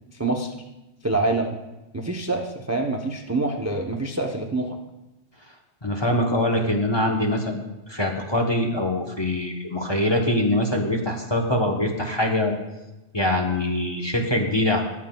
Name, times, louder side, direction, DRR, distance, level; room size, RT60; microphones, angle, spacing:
voice 1, 0.1-0.5 1.0-1.6 1.9-4.8, right 2 dB, 20° right, 2 dB, 0.5 m, -26 dB
voice 2, 5.8-12.5 13.1-14.8, left 1 dB, 25° left, 1 dB, 0.9 m, -23 dB
20.5 x 7.4 x 2.3 m, 1.0 s
omnidirectional pair, 1.2 m